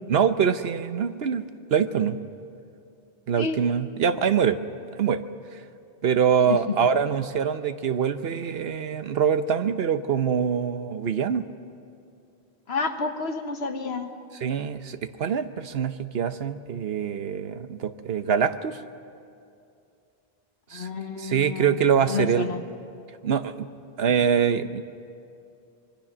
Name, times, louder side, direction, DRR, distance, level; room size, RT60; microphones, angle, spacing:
voice 1, 0.1-2.2 3.3-4.6 5.0-5.2 5.5-5.6 6.0-11.5 14.4-18.8 20.7-20.9 21.2-22.5 23.2-23.7 24.0-24.8, right 7 dB, 75° right, 10 dB, 1.0 m, -24 dB
voice 2, 6.5-6.8 12.7-14.2 20.7-21.8 22.0-22.6, left 4 dB, 80° left, 7 dB, 1.6 m, -30 dB
26.0 x 22.5 x 6.1 m, 2.5 s
omnidirectional pair, 1.0 m